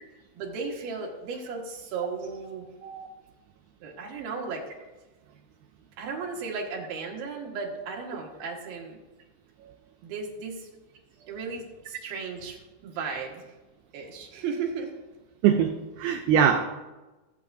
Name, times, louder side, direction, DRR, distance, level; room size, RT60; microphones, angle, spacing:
voice 1, 0.3-2.7 3.8-4.6 6.0-9.0 10.0-10.7 11.3-12.6 12.8-13.4 13.9-14.9, right 5 dB, 65° right, -1 dB, 3.1 m, -35 dB
voice 2, 15.4-16.6, right 8 dB, 90° right, 5 dB, 2.1 m, -23 dB
17.0 x 7.7 x 2.6 m, 1.1 s
omnidirectional pair, 4.9 m